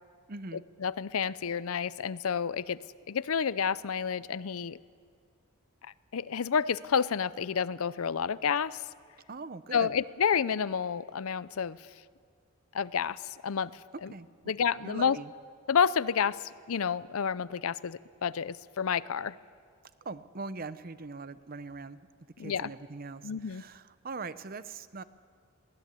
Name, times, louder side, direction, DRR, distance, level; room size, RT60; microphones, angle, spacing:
voice 1, 0.3-0.6 9.3-9.9 14.1-14.5 14.8-15.3 20.0-22.0 22.4-25.0, right 3 dB, 40° right, 14 dB, 0.7 m, -41 dB
voice 2, 0.8-2.8 3.1-4.8 6.1-8.8 9.7-11.8 12.7-13.7 14.0-14.1 14.5-15.2 15.7-19.4 22.4-22.7 23.2-23.6, left 7 dB, 80° left, 18 dB, 0.5 m, -30 dB
22.5 x 17.0 x 8.3 m, 2.1 s
head